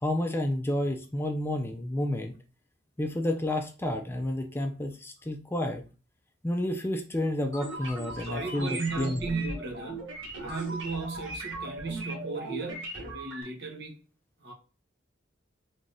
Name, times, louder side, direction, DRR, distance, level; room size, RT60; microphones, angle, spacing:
voice 1, 0.0-2.3 3.0-5.8 6.4-9.3, left 1 dB, 10° left, 0.4 m, -30 dB
sound 1, 7.5-13.4, right 2 dB, 90° right, 1.4 m, -38 dB
voice 2, 8.2-13.9 14.4-14.5, right 3 dB, 60° right, 1.1 m, -35 dB
3.6 x 3.3 x 2.7 m
head